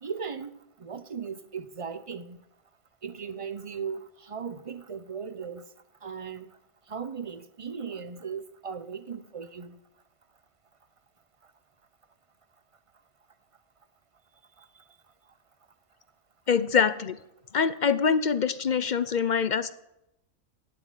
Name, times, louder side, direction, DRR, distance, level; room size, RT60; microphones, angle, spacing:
voice 1, 0.0-2.4 3.0-5.6 6.0-6.5 6.9-9.8, right 6 dB, 35° right, 0.6 m, -37 dB
voice 2, 16.5-17.2 17.5-19.7, left 6 dB, 50° left, 0.6 m, -24 dB
17.0 x 7.9 x 9.0 m
omnidirectional pair, 1.5 m